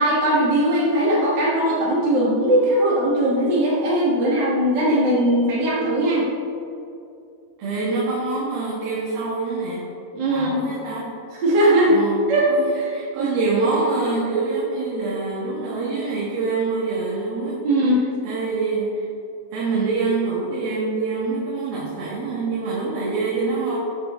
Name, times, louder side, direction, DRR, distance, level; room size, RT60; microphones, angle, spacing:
voice 1, 0.0-6.3 10.1-10.6 11.4-11.9 12.3-12.5 12.7-12.9 13.2-13.3 17.6-18.1, right 1 dB, 55° right, -6 dB, 1.2 m, -19 dB
voice 2, 7.6-9.8 10.3-11.2 11.9-12.2 12.5-18.0 18.2-19.0 19.5-23.8, right 3 dB, 80° right, -8 dB, 3.5 m, -25 dB
13.0 x 7.2 x 3.6 m, 2.6 s
omnidirectional pair, 4.2 m